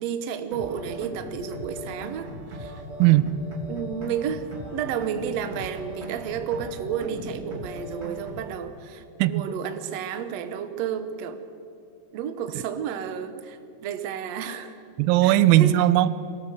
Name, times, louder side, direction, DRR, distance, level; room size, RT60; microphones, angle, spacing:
voice 1, 0.0-2.8 3.7-4.5 4.7-11.4 12.1-14.8 15.2-15.8, right 8 dB, 60° right, 8 dB, 1.9 m, -31 dB
sound 1, 0.5-8.5, equal, 20° right, 2.6 m, -39 dB
voice 2, 3.0-3.3 9.2-9.4 15.0-16.1, right 14 dB, 85° right, 15 dB, 2.5 m, -18 dB
23.5 x 18.0 x 6.5 m, 2.5 s
omnidirectional pair, 4.1 m